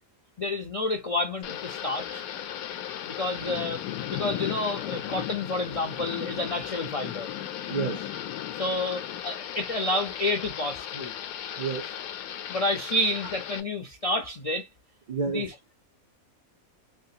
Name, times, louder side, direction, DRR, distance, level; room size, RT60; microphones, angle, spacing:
voice 1, 0.4-2.2 3.1-3.8 4.1-7.3 8.5-11.1 12.5-14.7 15.3-15.7, left 2 dB, 65° left, 0.3 m, -29 dB
Thunder / Rain, 1.4-13.6, left 10 dB, 85° left, 1.0 m, -36 dB
voice 2, 7.7-8.0 11.6-11.9 15.1-15.5, right 5 dB, 70° right, 0.4 m, -30 dB
3.5 x 2.3 x 2.7 m
omnidirectional pair, 1.5 m